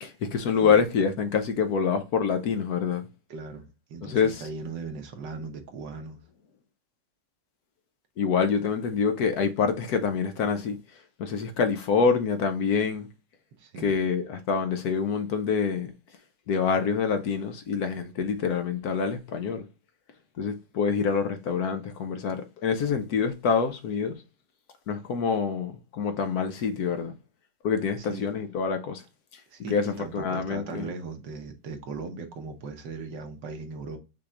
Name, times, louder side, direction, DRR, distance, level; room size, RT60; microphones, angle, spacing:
voice 1, 0.0-3.1 4.0-4.5 8.2-10.8 11.2-13.1 13.8-15.9 16.5-19.7 20.4-24.2 24.9-27.1 27.6-29.0 29.7-30.9, left 6 dB, 65° left, 1.2 m, -26 dB
voice 2, 0.5-0.8 3.3-6.2 13.6-13.9 28.0-28.3 29.5-34.0, right 4 dB, 80° right, 1.7 m, -38 dB
5.9 x 3.3 x 2.5 m
omnidirectional pair, 1.9 m